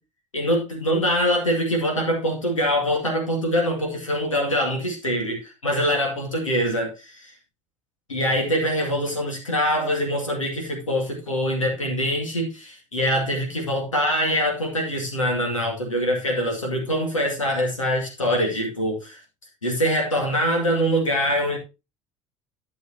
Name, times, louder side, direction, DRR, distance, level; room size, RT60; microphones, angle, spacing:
voice 1, 0.3-7.3 8.1-19.2 19.6-21.6, equal, 85° left, 2 dB, 2.2 m, -24 dB
11.0 x 7.3 x 2.8 m, 0.27 s
figure-of-eight pair, 60°, 16 cm